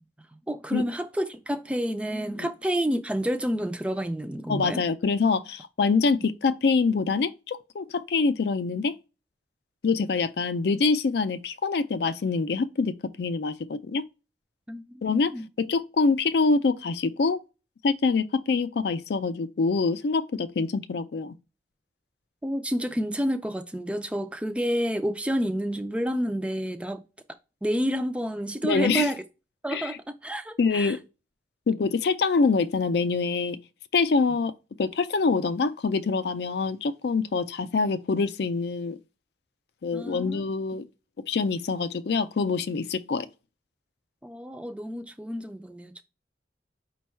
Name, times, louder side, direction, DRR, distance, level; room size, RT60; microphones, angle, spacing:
voice 1, 0.5-4.8 14.7-15.0 15.3-15.5 22.4-27.0 27.6-29.2 29.6-30.0 30.2-31.0 39.9-40.4 44.2-46.0, equal, 5° right, 0.3 m, -29 dB
voice 2, 4.5-8.9 9.8-14.0 15.0-15.3 15.6-17.4 17.8-21.3 28.6-29.1 29.7-30.0 30.6-31.0 31.7-33.6 33.9-34.5 34.8-39.0 39.8-40.8 41.3-43.3, left 4 dB, 65° left, 0.4 m, -25 dB
5.3 x 2.3 x 4.2 m
head